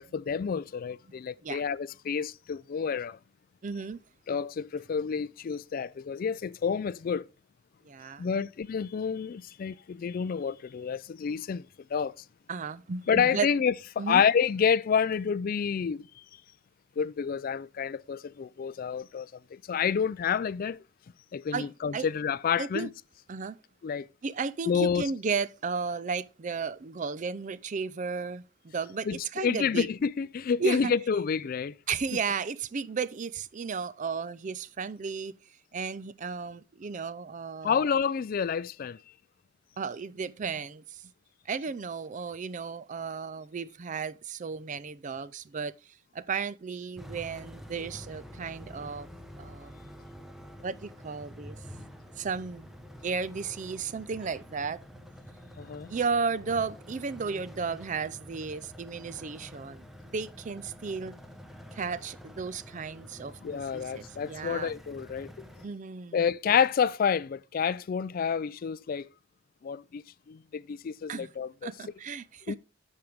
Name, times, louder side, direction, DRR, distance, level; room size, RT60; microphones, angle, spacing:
voice 1, 0.0-3.2 4.3-7.3 8.2-11.7 11.9-12.1 13.1-16.1 17.0-20.8 21.3-22.9 23.8-24.1 24.7-25.1 29.1-31.7 37.6-39.0 55.6-55.9 63.4-65.3 66.1-69.1 69.6-70.0 70.3-71.7 72.5-72.6, left 6 dB, 45° left, 0.3 m, -29 dB
voice 2, 3.6-4.0 7.9-8.3 12.5-13.5 14.0-14.2 21.5-22.1 22.6-22.9 23.3-23.6 24.2-29.9 30.6-30.9 31.9-35.3 35.7-37.8 39.8-41.0 41.5-45.7 46.1-49.1 49.4-49.8 50.6-51.6 52.2-52.7 53.0-54.8 55.9-61.1 61.7-64.7 65.6-66.2 71.1-71.3 71.6-72.6, right 5 dB, 40° right, 0.4 m, -34 dB
sound 1, 47.0-65.7, equal, ahead, 0.9 m, -48 dB
10.5 x 6.5 x 3.5 m
head